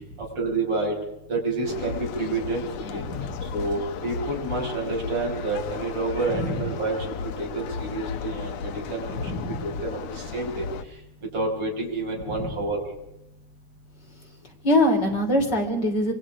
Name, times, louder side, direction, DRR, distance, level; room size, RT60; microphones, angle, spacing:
voice 1, 0.4-0.9 1.3-3.0 3.5-7.0 7.4-9.2 9.6-10.6 11.3-12.8, right 3 dB, 35° right, -1 dB, 6.7 m, -28 dB
sound 1, 1.6-10.8, left 6 dB, 85° left, 1.5 m, -35 dB
voice 2, 3.0-3.3 6.3-6.7 9.1-9.7 12.3-12.5 14.6-16.1, left 1 dB, 25° left, 2 dB, 3.6 m, -24 dB
28.5 x 23.0 x 5.1 m, 0.83 s
omnidirectional pair, 4.6 m